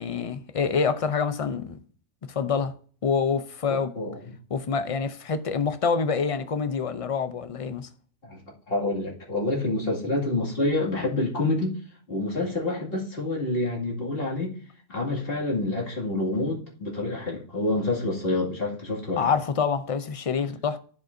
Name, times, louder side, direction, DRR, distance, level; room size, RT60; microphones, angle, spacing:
voice 1, 0.0-1.8 2.3-2.7 3.0-3.9 4.5-7.9 19.2-20.8, left 5 dB, 65° left, 0.3 m, -26 dB
voice 2, 3.7-4.3 8.2-8.4 8.7-11.7 12.1-14.6 14.9-19.3, left 2 dB, 45° left, 2.5 m, -27 dB
14.0 x 5.1 x 2.6 m
omnidirectional pair, 1.3 m